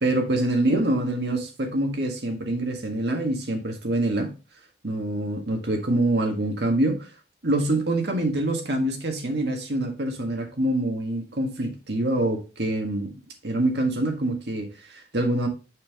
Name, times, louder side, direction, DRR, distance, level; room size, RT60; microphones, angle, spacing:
voice 1, 0.0-4.3 4.8-7.1 7.4-13.1 13.4-15.5, right 1 dB, 70° right, 1.6 m, -25 dB
6.5 x 5.6 x 3.5 m
head